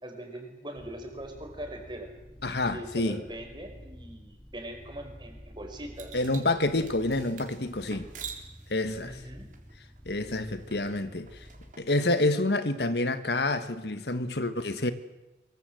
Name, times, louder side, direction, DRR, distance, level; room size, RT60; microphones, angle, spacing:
voice 1, 0.0-2.1 2.6-6.2 9.0-9.5, right 1 dB, 25° right, 5.0 m, -41 dB
kerri-cat-loopable, 0.7-11.7, equal, 10° left, 2.5 m, -50 dB
voice 2, 2.4-3.2 6.1-8.1 8.7-9.2 10.0-11.4 11.8-14.9, left 2 dB, 70° left, 1.6 m, -28 dB
sound 1, 5.9-12.1, right 6 dB, 45° right, 3.8 m, -48 dB
24.0 x 23.5 x 7.9 m
head